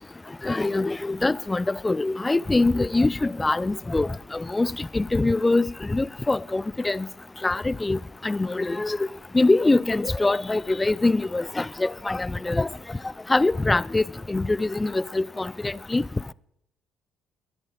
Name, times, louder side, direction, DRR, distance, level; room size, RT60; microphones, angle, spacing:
voice 1, 0.4-7.1 7.4-8.0 8.2-9.0 9.3-12.7 13.3-14.0 14.3-16.0, left 2 dB, 20° left, 0.5 m, -23 dB
12.0 x 11.0 x 8.8 m
hypercardioid pair, 50°, 0 cm